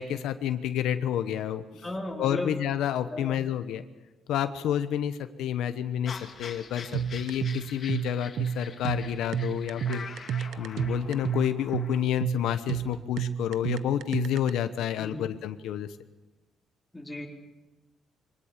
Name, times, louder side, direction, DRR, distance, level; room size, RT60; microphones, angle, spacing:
voice 1, 0.0-1.6 2.2-3.8 4.3-10.1 10.6-15.9, left 10 dB, 85° left, 10 dB, 1.0 m, -29 dB
voice 2, 1.8-2.5 3.1-3.4 15.0-15.3 16.9-17.3, left 1 dB, 10° left, 0 dB, 3.9 m, -35 dB
sound 1, 6.1-12.0, left 5 dB, 45° left, 2.7 m, -45 dB
sound 2, 6.9-14.5, right 8 dB, 70° right, 0.8 m, -30 dB
23.5 x 18.5 x 7.4 m, 1.1 s
cardioid pair, 110°, 0 cm